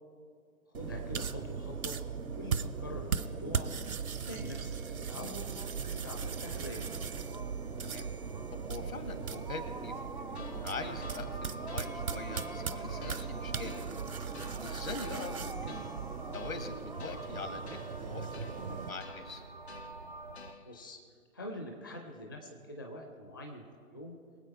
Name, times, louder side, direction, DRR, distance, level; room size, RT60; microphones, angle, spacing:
voice 1, 0.7-3.7 4.1-5.5 5.9-7.0 20.6-21.0 21.3-23.6 23.9-24.2, left 1 dB, 15° left, 1 dB, 0.5 m, -44 dB
sound 1, 0.7-18.9, right 6 dB, 70° right, 0.8 m, -38 dB
sound 2, 5.2-20.5, right 2 dB, 35° right, 0.4 m, -46 dB
voice 2, 8.6-10.2 10.5-13.8 14.6-15.8 16.3-19.4, left 3 dB, 70° left, 7 dB, 2.0 m, -43 dB
sound 3, 10.3-21.0, left 6 dB, 45° left, 0.9 m, -54 dB
23.5 x 8.0 x 4.6 m, 2.1 s
figure-of-eight pair, 140°, 44 cm